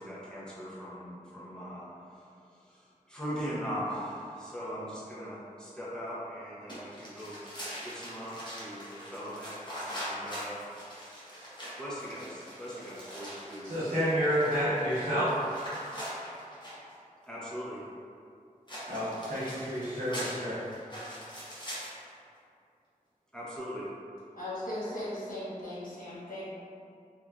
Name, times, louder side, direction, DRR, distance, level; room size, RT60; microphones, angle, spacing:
voice 1, 0.0-1.9 2.2-2.3 2.6-7.4 7.8-9.6 9.9-10.5 11.8-13.8 17.3-17.8 23.3-23.9, equal, 5° left, -8 dB, 0.6 m, -40 dB
sound 1, 6.7-16.9 18.7-22.1, equal, 30° left, 0.8 m, -42 dB
voice 2, 13.6-15.3 18.9-20.6, equal, 80° right, -13 dB, 0.8 m, -29 dB
voice 3, 24.4-26.4, left 1 dB, 75° left, -11 dB, 1.1 m, -37 dB
2.9 x 2.3 x 2.3 m, 2.4 s
wide cardioid pair, 50°, 14 cm